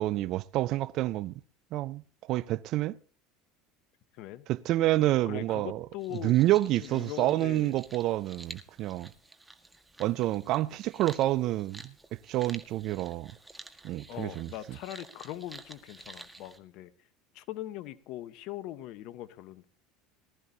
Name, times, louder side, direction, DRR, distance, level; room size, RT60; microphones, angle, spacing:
voice 1, 0.0-1.3 1.7-2.0 2.3-3.0 4.5-5.9 6.2-9.1 10.0-11.9 12.3-13.3 13.8-14.5, right 15 dB, 55° right, 0.5 m, -28 dB
voice 2, 4.1-4.4 5.2-6.4 6.8-7.7 14.1-16.9 17.3-19.6, left 14 dB, 60° left, 1.0 m, -41 dB
sound 1, 6.0-16.6, right 2 dB, 10° right, 1.6 m, -51 dB
19.0 x 14.0 x 2.8 m
hypercardioid pair, 80°, 0 cm